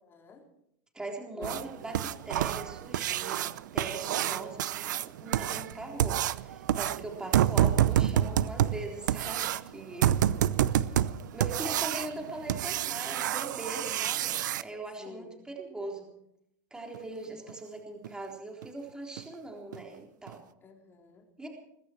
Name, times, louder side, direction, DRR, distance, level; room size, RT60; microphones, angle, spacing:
voice 1, 0.0-0.5 1.3-1.5 7.1-7.3 10.0-10.1 13.8-14.1 15.0-15.3 20.6-21.2, left 4 dB, 25° left, 1 dB, 4.1 m, -50 dB
voice 2, 0.9-10.4 10.8-11.0 11.3-16.1 16.7-20.4 21.4-21.5, right 2 dB, 10° right, 1 dB, 3.8 m, -41 dB
sound 1, 1.4-14.6 16.9-17.0 17.5-17.6 18.0-18.1 18.6-18.7 19.2-19.3 19.7-19.8 20.3-20.4, right 11 dB, 90° right, 0.7 m, -28 dB
20.5 x 15.0 x 4.5 m, 0.75 s
supercardioid pair, 125°, 10 cm